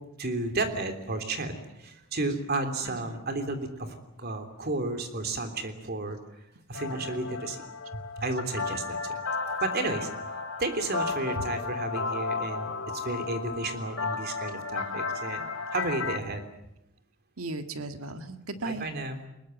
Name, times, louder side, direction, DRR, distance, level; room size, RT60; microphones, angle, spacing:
voice 1, 0.2-6.2 6.7-7.6 7.9-9.2 9.6-10.1 10.6-16.4 18.6-19.2, right 2 dB, 45° right, 7 dB, 3.3 m, -32 dB
voice 2, 2.8-3.3 6.9-7.2 16.1-16.3 17.4-18.9, right 2 dB, 70° right, 7 dB, 1.8 m, -37 dB
sound 1, 6.7-16.2, left 4 dB, 65° left, 3.0 m, -34 dB
23.0 x 21.5 x 9.3 m, 0.83 s
head